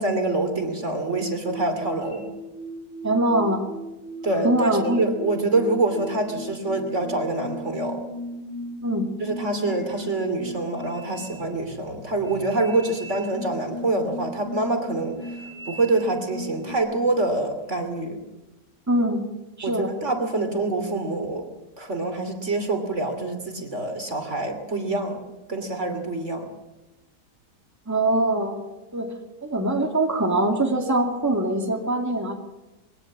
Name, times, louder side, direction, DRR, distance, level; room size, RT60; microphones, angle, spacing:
voice 1, 0.0-2.2 4.2-4.7 5.0-8.0 9.2-18.2 19.6-21.5 21.8-25.2 25.5-26.5, right 2 dB, 45° right, 6 dB, 3.1 m, -26 dB
sound 1, 1.0-16.8, equal, 85° left, 4.8 m, -37 dB
voice 2, 3.0-3.6 4.4-5.1 8.8-9.1 18.9-19.2 19.6-19.9 27.9-28.6 28.9-29.1 29.4-32.4, right 1 dB, 10° right, 2 dB, 2.3 m, -23 dB
22.0 x 17.5 x 7.5 m, 1.0 s
omnidirectional pair, 1.8 m